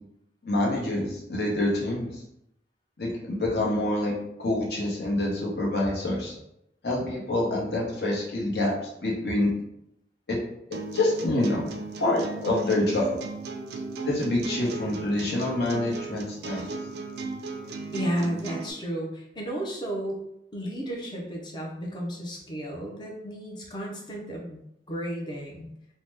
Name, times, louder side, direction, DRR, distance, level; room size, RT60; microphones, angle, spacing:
voice 1, 0.4-2.2 3.0-6.4 6.8-9.5 10.3-10.4 10.7-11.7 12.0-13.2 14.0-16.7, left 1 dB, 65° left, -4 dB, 0.9 m, -27 dB
sound 1, 10.7-18.7, right 3 dB, 70° right, 0.4 m, -36 dB
voice 2, 17.9-20.2 20.5-24.6 24.9-25.7, equal, 25° left, -1 dB, 0.5 m, -33 dB
2.7 x 2.1 x 3.3 m, 0.80 s
head